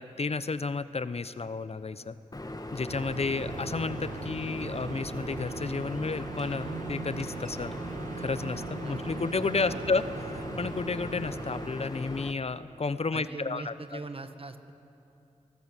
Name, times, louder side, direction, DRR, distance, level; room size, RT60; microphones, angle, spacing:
voice 1, 0.0-2.2 2.7-7.7 8.2-10.1 10.3-14.0, left 4 dB, 55° left, 13 dB, 0.8 m, -32 dB
sound 1, 2.3-12.3, left 1 dB, 30° left, 1.7 m, -39 dB
sound 2, 2.9-11.7, right 7 dB, 85° right, 0.5 m, -41 dB
sound 3, 5.7-12.2, equal, 5° left, 3.4 m, -58 dB
voice 2, 13.1-14.7, right 3 dB, 45° right, 8 dB, 1.6 m, -41 dB
25.5 x 18.5 x 8.3 m, 2.7 s
cardioid pair, 45°, 13 cm